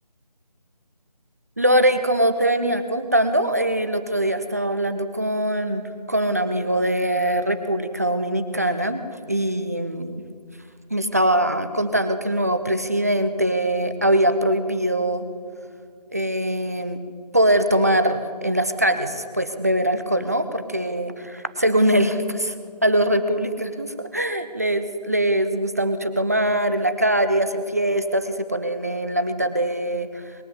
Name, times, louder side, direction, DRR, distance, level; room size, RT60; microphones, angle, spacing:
voice 1, 1.6-9.0 9.3-10.2 10.9-15.2 16.1-17.0 17.3-22.5 22.8-30.1, right 1 dB, 25° right, 9 dB, 0.6 m, -22 dB
21.5 x 7.7 x 8.3 m, 2.2 s
figure-of-eight pair, 165°, 21 cm